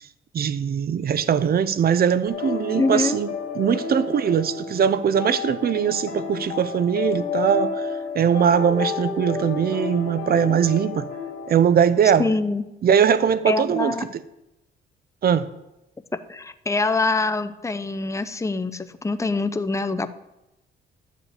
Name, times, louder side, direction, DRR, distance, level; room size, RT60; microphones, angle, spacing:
voice 1, 0.3-3.3 3.6-7.9 8.1-11.1 11.5-12.3 12.8-13.9 15.2-15.5, right 8 dB, 50° right, 0.7 m, -21 dB
sound 1, 2.3-11.6, left 5 dB, 75° left, 2.2 m, -31 dB
voice 2, 2.7-3.2 12.2-12.6 13.5-14.1 16.3-20.1, left 3 dB, 15° left, 0.6 m, -24 dB
11.5 x 5.0 x 8.2 m
cardioid pair, 90°, 20 cm